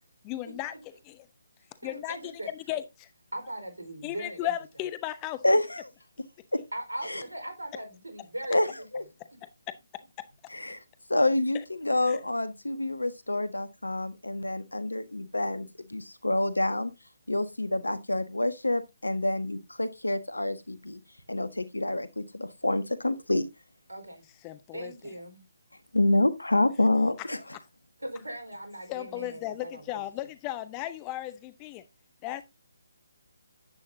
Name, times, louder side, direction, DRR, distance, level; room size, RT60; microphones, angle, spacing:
voice 1, 0.2-1.3 1.8-3.1 4.0-5.4 9.4-9.8 10.2-10.3 12.0-12.2 24.4-24.9 28.9-31.8 32.2-32.4, left 14 dB, 20° left, 0.8 m, -36 dB
voice 2, 1.8-2.5 3.3-4.5 6.7-8.7 23.9-24.2 24.7-25.4 28.0-30.0, right 1 dB, 80° right, 4.4 m, -39 dB
voice 3, 5.4-5.8 6.5-6.6 7.0-7.2 8.5-8.7 8.9-9.0 10.5-10.8 11.1-16.9 17.3-21.0 21.3-23.4 25.9-27.4, left 1 dB, 80° left, 1.5 m, -27 dB
10.5 x 8.9 x 2.7 m
figure-of-eight pair, 145°, 0 cm